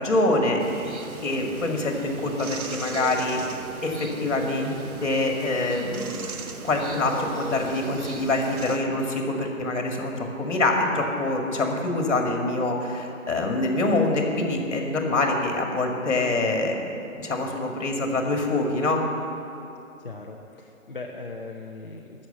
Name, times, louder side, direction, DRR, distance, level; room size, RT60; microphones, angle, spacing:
voice 1, 0.0-3.4 3.8-4.7 5.0-6.1 6.6-16.8 17.2-19.0, left 2 dB, 55° left, 2 dB, 2.0 m, -25 dB
sound 1, 0.6-8.8, right 4 dB, 80° right, 1.0 m, -37 dB
voice 2, 20.0-22.3, left 3 dB, 40° left, 0 dB, 0.6 m, -39 dB
14.5 x 6.4 x 6.9 m, 2.8 s
hypercardioid pair, 170°, 42 cm